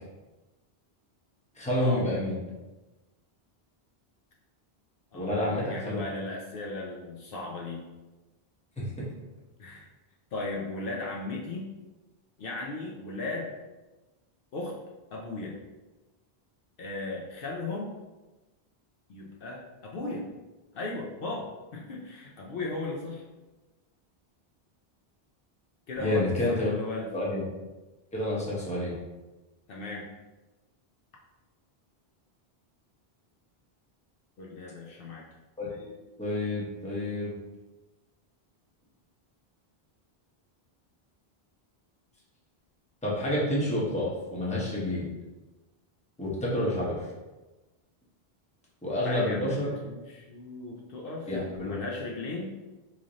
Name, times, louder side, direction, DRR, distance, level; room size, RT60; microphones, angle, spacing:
voice 1, 1.5-2.4 5.1-6.0 8.8-9.1 26.0-26.7 27.1-27.4 28.1-28.9 35.6-35.9 36.2-37.3 43.0-45.1 46.2-47.1 48.8-49.7 51.3-51.7, left 1 dB, 5° left, -6 dB, 0.8 m, -29 dB
voice 2, 5.1-7.8 9.6-9.9 10.3-11.7 12.4-13.5 14.5-14.8 15.1-15.6 16.8-17.9 19.1-20.3 20.7-23.2 25.9-27.1 29.7-30.1 34.4-35.2 49.0-51.3 51.6-52.5, left 2 dB, 65° left, -2 dB, 0.7 m, -36 dB
3.1 x 2.5 x 3.8 m, 1.1 s
omnidirectional pair, 1.1 m